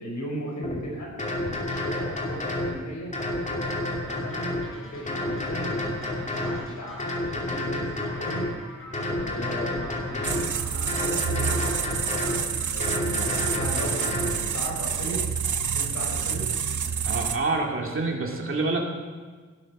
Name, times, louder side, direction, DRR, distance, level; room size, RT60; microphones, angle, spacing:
voice 1, 0.0-3.1 4.0-5.7 6.0-8.4 9.2-12.1 12.7-15.2 15.7-16.4, equal, 85° left, -2 dB, 5.6 m, -37 dB
sound 1, 0.6-0.8 1.2-2.7 3.1-4.6 5.1-6.6 7.0-8.5 8.9-10.4 10.9-12.4 12.8-14.3, left 1 dB, 25° left, 2.5 m, -29 dB
sound 2, 4.1-14.2, equal, 45° left, 4.6 m, -48 dB
sound 3, 10.2-17.4, right 7 dB, 90° right, 1.0 m, -28 dB
voice 2, 17.1-18.8, right 3 dB, 45° right, 1 dB, 2.4 m, -27 dB
16.5 x 12.0 x 6.1 m, 1.5 s
wide cardioid pair, 165°, 29 cm